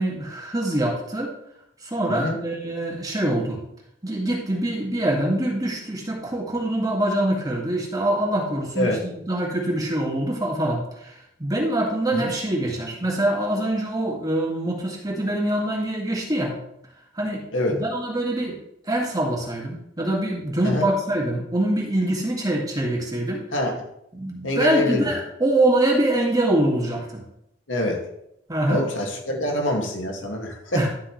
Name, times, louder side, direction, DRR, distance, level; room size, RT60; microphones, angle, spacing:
voice 1, 0.0-1.3 1.8-3.6 4.0-16.5 17.1-17.4 17.7-18.6 18.9-23.4 24.1-27.2 28.5-28.8 30.7-30.9, right 1 dB, 20° right, -2 dB, 2.3 m, -24 dB
voice 2, 2.1-2.4 8.7-9.0 12.1-12.3 17.5-17.8 20.6-20.9 23.5-23.8 24.4-25.1 27.7-28.0 28.7-30.9, left 1 dB, 85° left, 0 dB, 2.3 m, -25 dB
12.0 x 7.6 x 3.3 m, 0.78 s
head